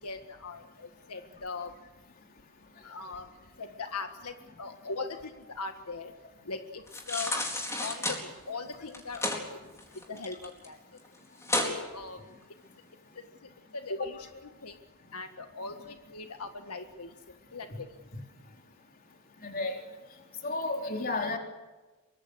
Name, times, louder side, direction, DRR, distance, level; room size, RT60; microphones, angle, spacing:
voice 1, 0.0-1.8 2.8-3.3 3.6-6.1 6.4-7.4 7.8-10.8 11.6-12.3 13.4-14.8 15.1-17.9, left 3 dB, 85° left, 6 dB, 1.7 m, -40 dB
sound 1, 6.9-8.2 8.9-9.4 9.8-10.7 11.0-11.1 11.4-11.7 12.2-12.3, left 1 dB, 15° left, 4.3 m, -31 dB
voice 2, 19.4-19.8 20.4-21.4, left 2 dB, 40° left, 2 dB, 4.0 m, -32 dB
24.5 x 24.0 x 6.5 m, 1.2 s
head